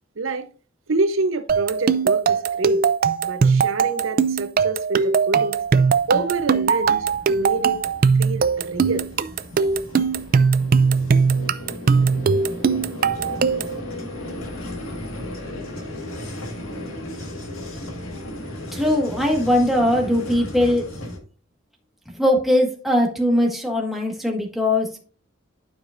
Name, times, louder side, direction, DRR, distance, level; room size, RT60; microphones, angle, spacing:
voice 1, 0.2-0.5 0.9-2.8 3.2-5.6 6.1-7.1 7.3-7.8 8.2-9.1, right 3 dB, 75° right, 0.8 m, -26 dB
sound 1, 1.5-13.8, right 5 dB, 45° right, 0.4 m, -20 dB
Vehicle, 5.6-21.2, left 1 dB, 85° left, 1.9 m, -35 dB
voice 2, 18.7-20.9 22.1-25.0, left 1 dB, ahead, 1.6 m, -20 dB
12.0 x 5.0 x 2.6 m
head